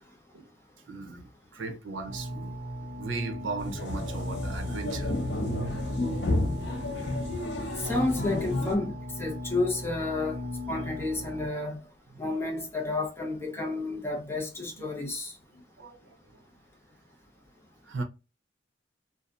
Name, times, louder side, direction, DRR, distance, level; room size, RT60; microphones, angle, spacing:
voice 1, 0.9-2.6 2.9-5.2 5.5-5.7 14.9-15.0 15.5-16.2 17.9-18.0, right 3 dB, 85° right, 0.6 m, -37 dB
sound 1, 2.1-11.5, left 1 dB, 30° right, 0.8 m, -39 dB
sound 2, 3.6-8.8, left 2 dB, 65° left, 0.7 m, -31 dB
voice 2, 7.8-10.4 10.7-11.8 12.2-15.3, left 2 dB, 15° left, 0.7 m, -31 dB
2.6 x 2.3 x 2.3 m
head